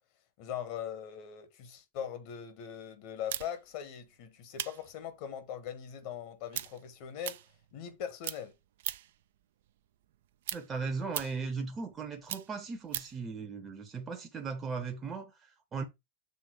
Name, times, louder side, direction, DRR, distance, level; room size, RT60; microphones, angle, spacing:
voice 1, 0.4-7.4 7.7-8.5, left 9 dB, 45° left, 1.3 m, -41 dB
sound 1, 3.3-9.2 9.6-13.2, right 12 dB, 55° right, 0.5 m, -40 dB
voice 2, 10.5-15.8, right 4 dB, 20° right, 0.9 m, -37 dB
7.1 x 3.7 x 4.7 m
figure-of-eight pair, 90°, 0 cm